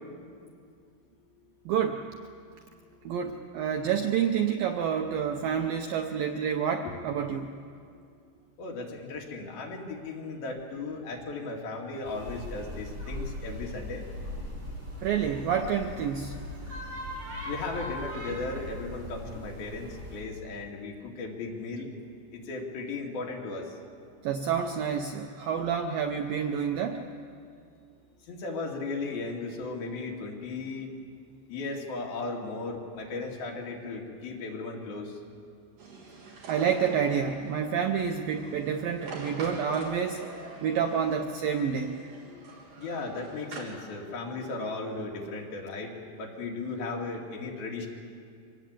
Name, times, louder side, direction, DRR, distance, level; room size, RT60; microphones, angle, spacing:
voice 1, 1.7-2.1 3.1-7.5 15.0-16.4 24.2-27.0 36.5-40.2 40.6-41.9, right 7 dB, 75° right, 4 dB, 2.1 m, -28 dB
voice 2, 8.6-14.1 17.5-21.9 22.3-23.7 28.3-30.9 31.5-35.1 42.2-42.3 42.8-47.9, left 3 dB, 60° left, 0 dB, 3.9 m, -36 dB
sound 1, 12.0-20.2, left 1 dB, 30° right, 7.7 m, -39 dB
sound 2, 35.8-43.6, right 3 dB, 55° right, 4.7 m, -45 dB
24.5 x 18.5 x 8.8 m, 2.3 s
omnidirectional pair, 5.1 m